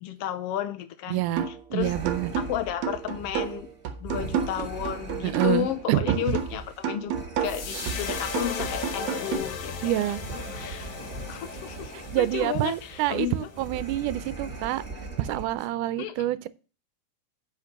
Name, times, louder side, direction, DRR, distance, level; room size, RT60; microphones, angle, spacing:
voice 1, 0.0-1.2 1.7-1.9 2.4-3.7 4.0-7.1 7.4-9.9 10.3-11.0 11.3-13.5 16.0-16.1, left 11 dB, 85° left, 1.3 m, -32 dB
voice 2, 1.1-1.5 1.7-2.3 5.2-6.3 7.7-7.9 9.8-10.2 12.1-14.8 15.2-16.5, right 14 dB, 85° right, 2.1 m, -27 dB
sound 1, 1.4-1.7 2.1-5.8 6.1-9.4, right 8 dB, 65° right, 2.3 m, -31 dB
sound 2, 1.8-15.7, right 3 dB, 20° right, 2.5 m, -40 dB
sound 3, 7.4-13.8, left 6 dB, 70° left, 2.4 m, -37 dB
8.6 x 5.1 x 5.8 m
omnidirectional pair, 3.6 m